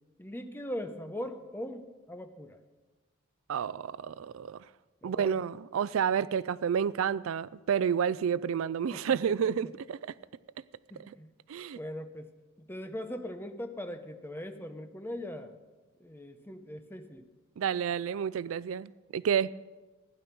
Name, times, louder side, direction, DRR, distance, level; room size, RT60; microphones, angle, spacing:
voice 1, 0.2-2.6 5.0-5.4 8.9-9.2 10.9-11.3 11.7-12.3 12.6-15.5 16.0-17.3, left 1 dB, 10° left, 0.9 m, -40 dB
voice 2, 3.5-4.6 5.0-10.1 11.5-11.8 17.6-19.5, right 7 dB, 70° right, 0.4 m, -30 dB
15.5 x 10.5 x 6.0 m
head